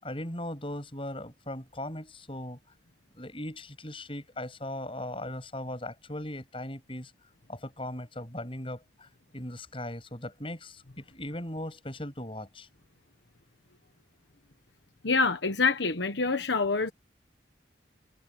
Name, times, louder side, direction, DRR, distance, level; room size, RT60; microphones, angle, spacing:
voice 1, 0.0-2.6 3.1-7.1 7.5-9.1 9.3-12.7, left 1 dB, 30° left, 7.3 m, -38 dB
voice 2, 15.0-16.9, left 4 dB, 75° left, 1.3 m, -26 dB
head